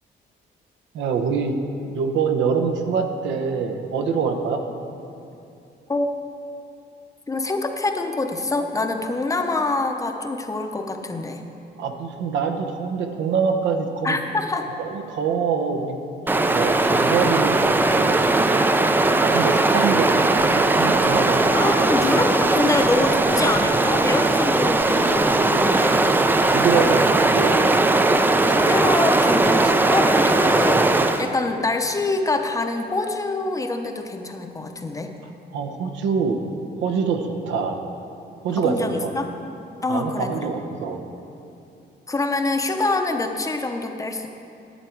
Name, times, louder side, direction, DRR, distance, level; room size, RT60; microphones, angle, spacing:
voice 1, 0.9-4.6 11.8-14.2 14.8-16.0 16.3-18.2 19.1-22.0 26.5-27.6 35.5-36.4 36.8-37.8 38.4-39.1 39.9-41.0, right 5 dB, 85° right, 4 dB, 0.9 m, -25 dB
voice 2, 7.3-11.4 14.0-14.7 21.5-26.0 28.2-30.8 31.2-35.1 38.6-39.3 39.8-40.8 42.1-44.3, left 2 dB, 20° left, 5 dB, 0.6 m, -25 dB
Stream, 16.3-31.3, right 2 dB, 10° right, 0.3 m, -19 dB
11.0 x 8.4 x 4.5 m, 2.7 s
cardioid pair, 135°, 19 cm